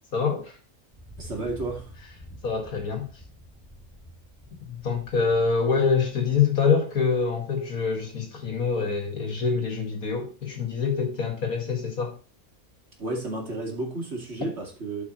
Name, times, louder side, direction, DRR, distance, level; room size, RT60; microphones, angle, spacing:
voice 1, 0.1-0.5 2.4-3.1 4.7-12.1, left 5 dB, 85° left, 2.5 m, -25 dB
Thunder, 0.9-6.4, equal, ahead, 2.6 m, -47 dB
voice 2, 1.2-1.9 13.0-15.0, right 2 dB, 50° right, 2.5 m, -32 dB
12.0 x 5.6 x 3.1 m
omnidirectional pair, 1.5 m